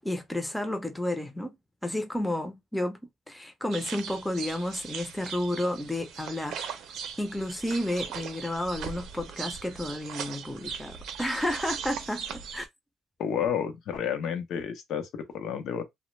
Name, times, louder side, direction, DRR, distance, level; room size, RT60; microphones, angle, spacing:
voice 1, 0.0-1.6 1.8-3.0 3.3-6.6 7.2-12.7, left 1 dB, 5° left, 0.5 m, -31 dB
sound 1, 3.7-12.7, right 7 dB, 80° right, 0.5 m, -39 dB
voice 2, 13.2-15.8, left 8 dB, 75° left, 0.6 m, -31 dB
2.1 x 2.1 x 3.0 m
cardioid pair, 90°, 0 cm